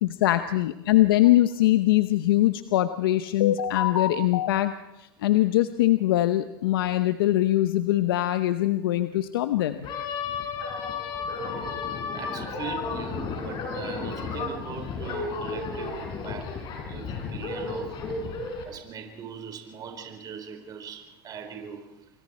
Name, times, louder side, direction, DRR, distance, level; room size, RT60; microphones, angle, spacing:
voice 1, 0.0-4.7 5.0-9.8, left 14 dB, 85° left, 10 dB, 0.9 m, -22 dB
sound 1, 9.8-18.6, left 4 dB, 45° left, 5.9 m, -33 dB
voice 2, 12.0-16.6 16.9-18.2 18.7-22.1, right 7 dB, 35° right, 5 dB, 4.1 m, -40 dB
27.5 x 23.5 x 4.4 m, 0.95 s
supercardioid pair, 120°, 12 cm